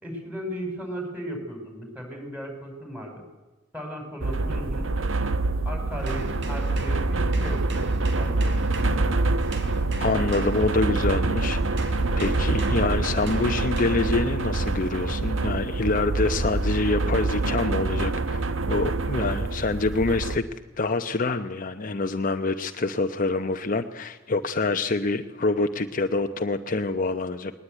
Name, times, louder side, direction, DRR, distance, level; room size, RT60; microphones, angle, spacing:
voice 1, 0.0-3.2 3.7-4.9 5.7-7.9 8.2-8.6, equal, 5° right, 3 dB, 5.9 m, -36 dB
sound 1, 4.2-20.4, right 2 dB, 80° right, 1.1 m, -26 dB
sound 2, 6.0-11.3 11.8-14.3 14.9-15.2, right 2 dB, 65° right, 3.5 m, -41 dB
voice 2, 10.0-20.4 20.8-27.5, left 3 dB, 45° left, 7 dB, 0.8 m, -26 dB
20.5 x 19.5 x 9.2 m, 1.2 s
head